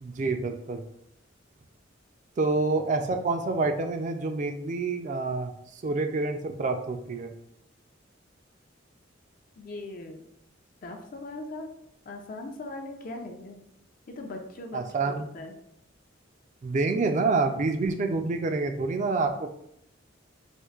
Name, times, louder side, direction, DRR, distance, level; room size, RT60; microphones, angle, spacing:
voice 1, 0.0-0.8 2.4-5.5 5.8-7.3 14.7-15.3 16.6-19.5, right 3 dB, 40° right, 6 dB, 0.3 m, -27 dB
voice 2, 9.6-10.2 10.8-11.8 12.1-13.6 14.1-15.6, left 2 dB, 45° left, 3 dB, 0.4 m, -40 dB
4.4 x 2.5 x 2.4 m, 0.75 s
head